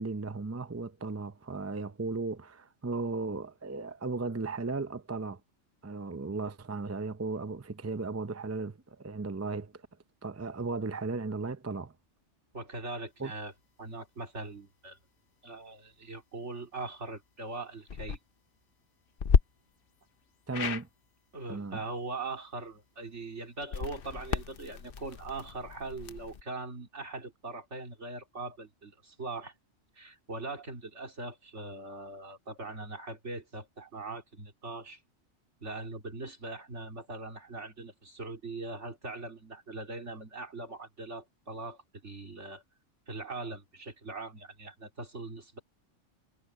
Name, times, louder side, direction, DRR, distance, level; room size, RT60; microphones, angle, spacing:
voice 1, 0.0-5.4 5.8-9.8 10.2-11.9 13.2-13.3 20.5-20.9 21.5-21.8, right 3 dB, 20° right, 0.5 m, -36 dB
voice 2, 12.5-13.5 13.8-15.0 15.4-18.2 21.3-29.5 30.0-35.0 35.6-42.6 43.1-45.6, right 3 dB, 70° right, 3.6 m, -41 dB
sound 1, 17.8-18.2 19.2-19.4 20.5-20.8 23.6-26.4, left 6 dB, 50° left, 1.0 m, -31 dB
omnidirectional pair, 1.2 m